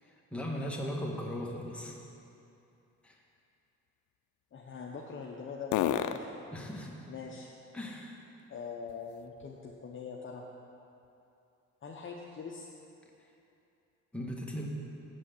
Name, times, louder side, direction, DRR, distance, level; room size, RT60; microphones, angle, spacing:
voice 1, 0.0-2.0 3.0-3.2 6.5-7.1 7.7-8.2 13.2-13.3 14.1-14.7, equal, 5° left, -2 dB, 1.4 m, -38 dB
sound 1, 0.7-9.8 10.2-14.0, left 10 dB, 75° left, 0.5 m, -42 dB
voice 2, 4.5-6.3 7.1-7.5 8.5-10.4 11.8-12.7, left 5 dB, 40° left, -1 dB, 0.8 m, -43 dB
7.1 x 6.3 x 7.8 m, 2.7 s
cardioid pair, 90°, 30 cm